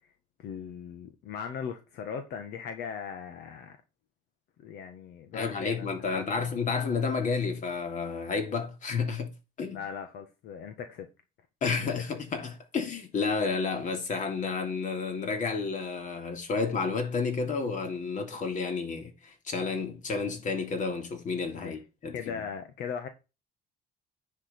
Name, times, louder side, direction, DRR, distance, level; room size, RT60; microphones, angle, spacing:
voice 1, 0.4-3.8 4.6-6.5 9.7-11.1 11.8-12.0 21.6-21.8 22.1-23.1, left 7 dB, 75° left, 1.6 m, -39 dB
voice 2, 5.3-9.8 11.6-22.4, left 4 dB, 50° left, 2.9 m, -31 dB
9.9 x 6.2 x 4.5 m
cardioid pair, 110°, 17 cm